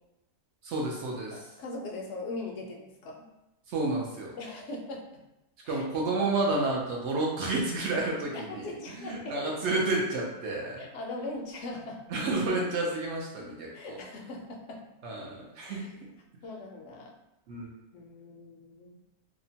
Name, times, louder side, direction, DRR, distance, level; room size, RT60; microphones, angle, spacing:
voice 1, 0.6-1.4 3.7-4.3 5.7-10.8 12.1-13.7 15.0-15.8 17.5-17.7, right 2 dB, 65° right, -2 dB, 0.7 m, -30 dB
voice 2, 1.3-3.3 4.3-5.1 5.6-6.3 8.3-9.4 10.8-12.0 13.7-14.8 15.6-15.9 16.4-17.1 17.9-19.0, left 2 dB, 65° left, 0 dB, 0.7 m, -40 dB
2.8 x 2.1 x 2.7 m, 0.92 s
omnidirectional pair, 1.6 m